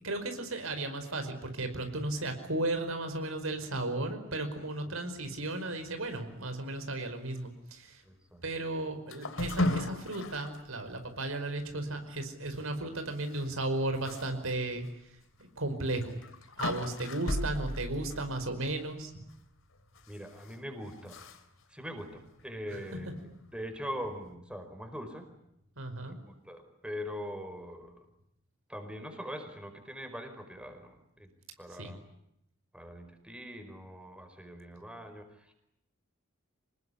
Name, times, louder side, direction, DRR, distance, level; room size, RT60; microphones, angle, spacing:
voice 1, 0.0-8.0 8.4-14.9 15.4-16.2 16.6-19.1 25.8-26.2 31.8-31.9, right 2 dB, 80° right, 7 dB, 5.1 m, -35 dB
voice 2, 4.8-5.2 8.0-8.4 20.1-21.2 21.7-25.3 26.1-28.0 28.7-31.3 31.6-32.0 32.7-35.5, equal, 5° right, 6 dB, 4.9 m, -42 dB
sound 1, 9.1-10.6 11.1-11.2 11.6-11.7 13.3-13.4 14.0-14.3 14.8-14.9 15.9-19.1 20.0-20.5 21.1-21.4, left 1 dB, 70° left, 3.0 m, -35 dB
27.0 x 20.5 x 10.0 m, 0.80 s
head